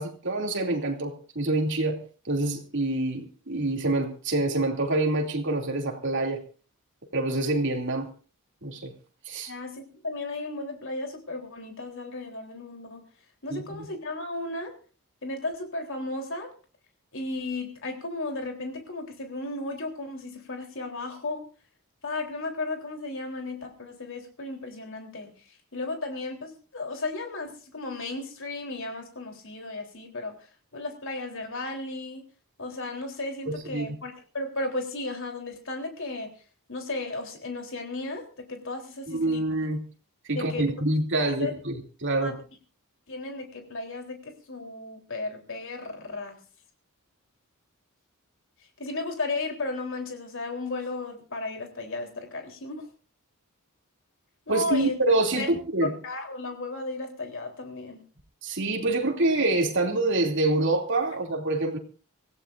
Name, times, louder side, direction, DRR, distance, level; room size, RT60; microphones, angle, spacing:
voice 1, 0.0-2.0 2.3-6.4 7.1-8.1 8.6-8.9 9.2-9.5 13.5-13.8 33.5-34.0 39.1-39.8 40.3-41.7 42.0-42.4 54.5-55.9 58.4-61.8, right 2 dB, 55° right, 2.9 m, -26 dB
voice 2, 9.5-13.0 13.4-14.8 15.2-16.5 17.1-21.4 22.0-32.2 32.6-36.3 36.7-39.4 40.3-40.7 41.2-41.5 42.2-42.3 43.1-46.4 48.8-52.9 54.5-55.0 55.4-55.5 55.8-58.0, left 2 dB, 60° left, 3.7 m, -34 dB
25.0 x 15.5 x 2.6 m
head